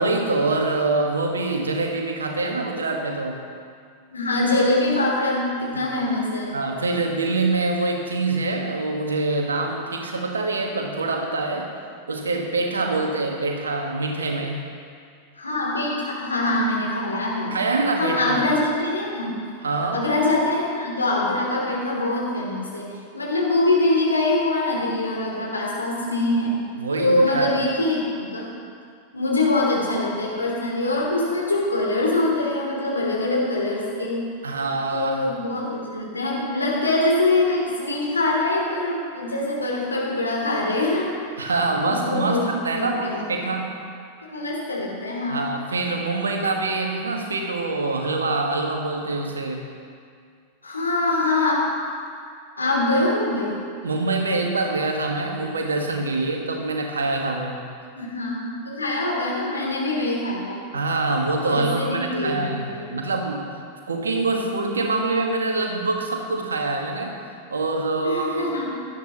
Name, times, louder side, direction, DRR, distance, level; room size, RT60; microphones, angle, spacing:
voice 1, 0.0-3.4 5.7-5.8 6.5-11.7 12.1-14.6 17.5-18.4 19.6-20.0 26.7-27.5 34.4-35.3 41.4-43.8 45.3-49.6 53.8-57.6 60.7-63.4 63.9-67.1 67.5-68.5, right 3 dB, 70° right, 2 dB, 1.5 m, -25 dB
voice 2, 4.1-6.5 15.4-17.5 18.0-19.3 19.9-22.9 23.1-26.6 26.9-28.5 29.1-34.3 34.9-41.5 41.8-42.4 42.7-43.2 44.3-45.4 50.6-51.6 52.6-53.6 57.9-60.7 61.5-62.9 68.0-68.7, left 2 dB, 80° left, -4 dB, 3.0 m, -23 dB
17.5 x 12.0 x 3.1 m, 2.2 s
figure-of-eight pair, 90°, 0 cm